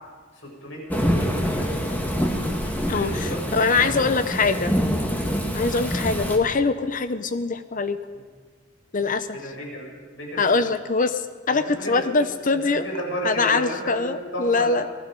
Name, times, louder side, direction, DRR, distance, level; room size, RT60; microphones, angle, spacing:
voice 1, 0.4-2.1 2.8-4.1 4.4-4.6 4.9-5.2 8.1-8.2 9.3-9.9 10.1-10.5 11.5-12.1 12.5-14.7, equal, 65° left, -2 dB, 7.4 m, -34 dB
Thunderstorm / Rain, 0.9-6.4, equal, 10° left, 2.2 m, -25 dB
voice 2, 2.9-4.7 5.5-8.0 8.9-9.4 10.4-12.9 13.2-14.9, left 4 dB, 40° left, 11 dB, 0.8 m, -23 dB
27.5 x 19.0 x 5.4 m, 1.5 s
head